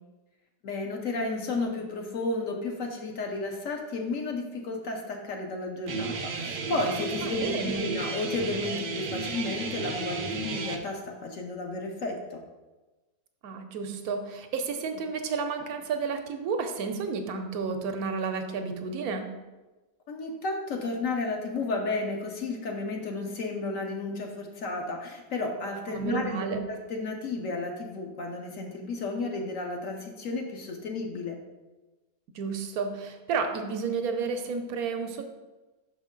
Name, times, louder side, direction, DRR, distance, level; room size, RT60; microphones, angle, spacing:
voice 1, 0.6-12.4 20.1-31.4, left 3 dB, 60° left, 2 dB, 1.1 m, -32 dB
Guitar, 5.9-10.8, right 4 dB, 90° right, 0.4 m, -33 dB
voice 2, 7.2-7.9 13.4-19.3 25.9-26.6 32.3-35.2, right 5 dB, 75° right, 5 dB, 1.1 m, -31 dB
6.2 x 5.2 x 3.7 m, 1.2 s
omnidirectional pair, 1.7 m